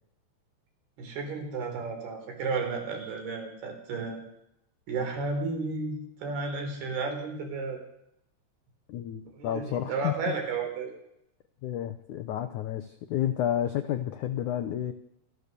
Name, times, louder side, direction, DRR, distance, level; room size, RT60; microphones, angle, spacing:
voice 1, 1.0-4.2 4.9-7.8 9.4-10.9, right 4 dB, 65° right, 5 dB, 5.9 m, -33 dB
voice 2, 8.9-10.4 11.6-14.9, left 11 dB, 85° left, 9 dB, 1.7 m, -31 dB
27.0 x 14.5 x 6.9 m, 0.78 s
omnidirectional pair, 4.9 m